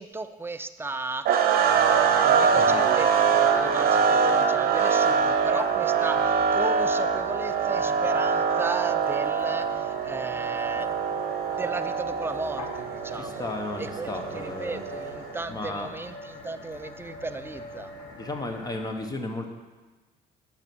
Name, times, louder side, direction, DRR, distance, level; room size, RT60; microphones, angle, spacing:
voice 1, 0.0-1.5 1.8-10.9 11.6-13.5 13.8-17.9, right 3 dB, 15° right, 10 dB, 0.5 m, -35 dB
sound 1, 1.3-15.4, right 6 dB, 60° right, 0.8 m, -24 dB
sound 2, 1.6-18.9, left 1 dB, 80° left, 1.7 m, -42 dB
voice 2, 13.1-14.8 15.5-15.9 18.2-19.5, left 2 dB, 25° left, 4 dB, 1.2 m, -34 dB
8.6 x 6.1 x 6.2 m, 1.3 s
cardioid pair, 110°, 17 cm